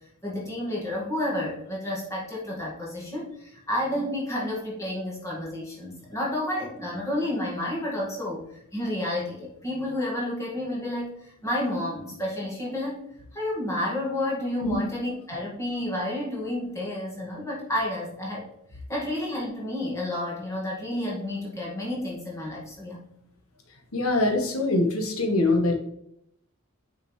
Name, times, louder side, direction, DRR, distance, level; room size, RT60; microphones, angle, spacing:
voice 1, 0.2-13.0 13.3-18.5 18.9-23.0, left 1 dB, 15° left, -4 dB, 1.7 m, -30 dB
voice 2, 23.9-25.7, left 2 dB, 85° left, 3 dB, 1.2 m, -23 dB
6.4 x 5.0 x 3.1 m, 0.74 s
head